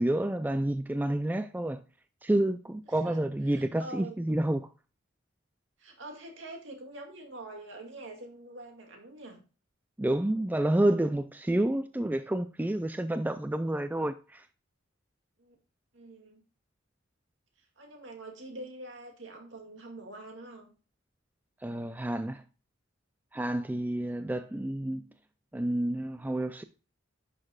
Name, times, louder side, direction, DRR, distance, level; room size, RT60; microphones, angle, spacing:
voice 1, 0.0-1.8 2.2-4.6 10.0-14.5 21.6-22.4 23.3-25.0 25.5-26.6, right 1 dB, 10° right, 0.3 m, -29 dB
voice 2, 2.9-4.2 5.8-9.4 15.4-15.6 15.9-16.4 17.6-20.7 24.0-24.3, right 2 dB, 65° right, 2.3 m, -45 dB
11.0 x 6.5 x 2.3 m
head